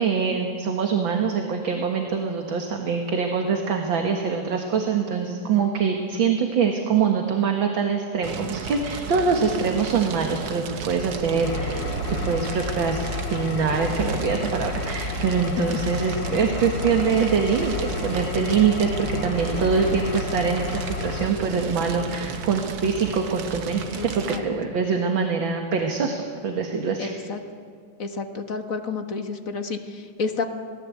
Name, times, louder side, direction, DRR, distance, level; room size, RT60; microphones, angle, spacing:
voice 1, 0.0-27.2, right 5 dB, 65° right, 3 dB, 2.3 m, -24 dB
Fire, 8.2-24.4, right 6 dB, 90° right, 2.3 m, -33 dB
Engine, 11.4-21.3, left 5 dB, 60° left, 0.8 m, -32 dB
voice 2, 23.9-24.4 27.0-27.4 28.0-30.4, left 4 dB, 40° left, 6 dB, 1.7 m, -30 dB
28.0 x 18.5 x 8.5 m, 2.2 s
omnidirectional pair, 2.4 m